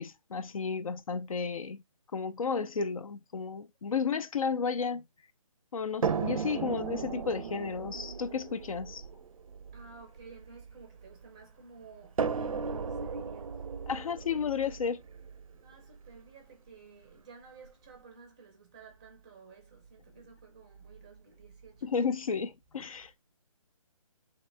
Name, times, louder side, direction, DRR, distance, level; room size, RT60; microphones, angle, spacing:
voice 1, 0.0-1.8 2.1-5.0 5.7-9.0 13.9-15.0 21.8-23.1, left 5 dB, 70° left, 0.5 m, -33 dB
sound 1, 6.0-11.2 12.2-16.1 17.1-17.2 17.6-17.7, right 6 dB, 70° right, 0.5 m, -36 dB
voice 2, 9.7-13.9 15.6-22.1, right 5 dB, 10° right, 0.5 m, -53 dB
3.6 x 2.9 x 3.2 m
hypercardioid pair, 165°, 18 cm